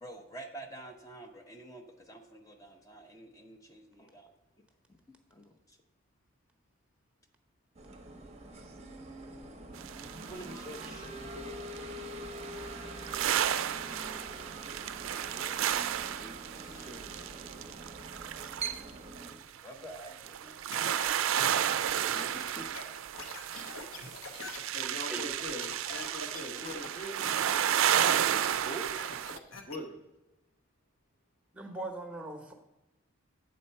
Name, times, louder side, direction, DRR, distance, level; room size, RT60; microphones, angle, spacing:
voice 1, 0.0-4.3 5.4-5.5 10.2-11.6 15.2-15.6 16.1-17.7 19.6-20.6 21.7-22.7 28.7-28.9, right 1 dB, 15° left, 4 dB, 0.5 m, -47 dB
sound 1, 7.7-19.4, right 2 dB, 30° right, 0.7 m, -44 dB
sound 2, 9.8-11.1 11.7-29.4, right 10 dB, 70° right, 0.3 m, -33 dB
sound 3, 20.7-29.8, left 3 dB, 80° left, 0.9 m, -45 dB
voice 2, 24.7-27.3 29.7-30.0, left 1 dB, 40° left, 2 dB, 0.9 m, -42 dB
voice 3, 31.5-32.5, right 2 dB, 5° right, 4 dB, 0.9 m, -40 dB
7.7 x 4.2 x 5.4 m, 0.97 s
head